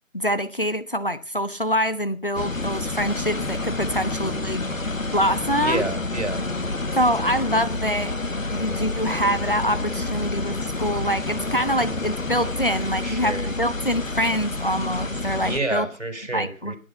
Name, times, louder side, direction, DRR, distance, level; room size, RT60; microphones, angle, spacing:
voice 1, 0.1-4.6 5.1-5.8 6.9-8.2 8.5-15.9 16.3-16.7, equal, 40° left, 0.9 m, -25 dB
sound 1, 2.3-15.6, left 2 dB, 70° left, 1.6 m, -29 dB
voice 2, 5.5-6.4 13.0-13.6 15.4-16.8, right 2 dB, 60° right, 5.2 m, -29 dB
18.0 x 9.4 x 5.7 m
figure-of-eight pair, 170°, 41 cm